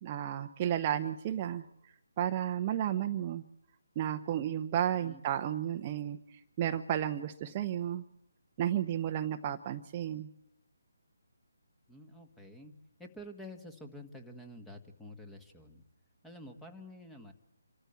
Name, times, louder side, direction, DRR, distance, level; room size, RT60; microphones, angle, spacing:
voice 1, 0.0-1.6 2.2-3.4 4.0-6.2 6.6-8.0 8.6-10.3, right 10 dB, 30° right, 6 dB, 0.8 m, -32 dB
voice 2, 11.9-12.7 13.0-15.8 16.2-17.3, left 1 dB, 5° left, 5 dB, 1.6 m, -49 dB
27.0 x 13.5 x 8.2 m, 0.80 s
figure-of-eight pair, 155°, 0 cm